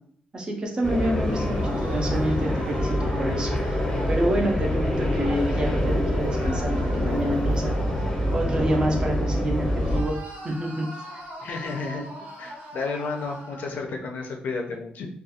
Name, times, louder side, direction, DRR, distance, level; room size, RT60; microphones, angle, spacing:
voice 1, 0.3-3.8 4.1-7.8 8.3-10.2 10.4-10.9, right 1 dB, 30° right, 1 dB, 0.5 m, -28 dB
sound 1, 0.8-10.0, left 1 dB, 15° left, 0.7 m, -25 dB
sound 2, 1.2-5.5 6.3-9.4 9.8-13.7, right 1 dB, 70° right, 0.7 m, -42 dB
voice 2, 11.4-12.1 12.4-15.1, left 4 dB, 65° left, 2 dB, 0.5 m, -32 dB
2.3 x 2.3 x 2.7 m, 0.64 s
wide cardioid pair, 160°, 3 cm